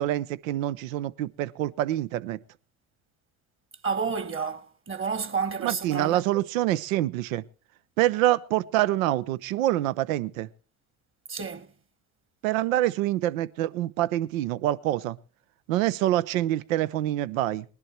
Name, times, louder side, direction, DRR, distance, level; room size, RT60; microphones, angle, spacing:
voice 1, 0.0-2.4 5.6-7.4 8.0-10.5 12.4-15.2 15.7-17.6, right 14 dB, 85° right, 0.7 m, -26 dB
voice 2, 3.8-6.2 11.3-11.7, right 5 dB, 30° right, 1.6 m, -30 dB
20.0 x 11.0 x 4.5 m
hypercardioid pair, 70°, 39 cm